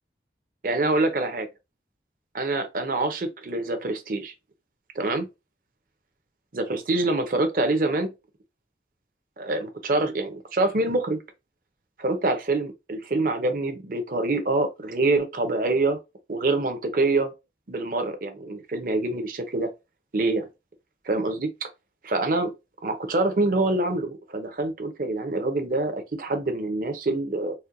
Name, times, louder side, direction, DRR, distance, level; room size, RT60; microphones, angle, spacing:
voice 1, 0.6-1.5 2.3-4.3 4.9-5.3 6.5-8.1 9.4-11.2 12.0-16.0 16.3-17.3 17.7-19.7 20.1-20.5 21.1-21.7 22.0-22.5 22.8-27.5, right 2 dB, 50° right, 0.7 m, -25 dB
4.2 x 2.1 x 2.5 m
head